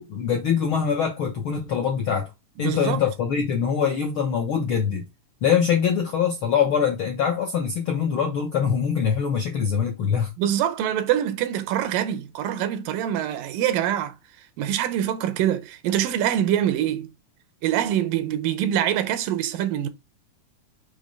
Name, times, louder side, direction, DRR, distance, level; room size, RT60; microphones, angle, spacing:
voice 1, 0.0-2.3 2.6-5.0 5.4-10.3, left 7 dB, 70° left, 1.2 m, -23 dB
voice 2, 2.6-3.0 10.4-14.2 14.6-17.1 17.6-19.9, right 11 dB, 90° right, 2.6 m, -24 dB
7.1 x 3.1 x 5.3 m
omnidirectional pair, 3.8 m